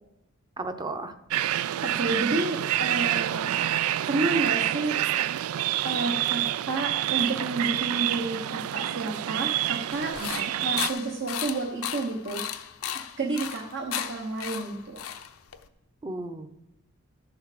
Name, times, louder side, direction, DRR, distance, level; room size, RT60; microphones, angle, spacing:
voice 1, 0.6-1.1 10.2-10.5 16.0-16.5, right 2 dB, 20° right, 9 dB, 0.7 m, -34 dB
sound 1, 1.3-10.9, right 12 dB, 85° right, 0.3 m, -27 dB
voice 2, 1.8-3.5 4.1-5.0 5.8-10.2 10.6-12.4 13.2-15.0, right 2 dB, 60° right, 0 dB, 1.0 m, -30 dB
sound 2, 9.9-15.7, left 9 dB, 75° left, 0.7 m, -35 dB
12.5 x 7.1 x 5.0 m, 0.89 s
head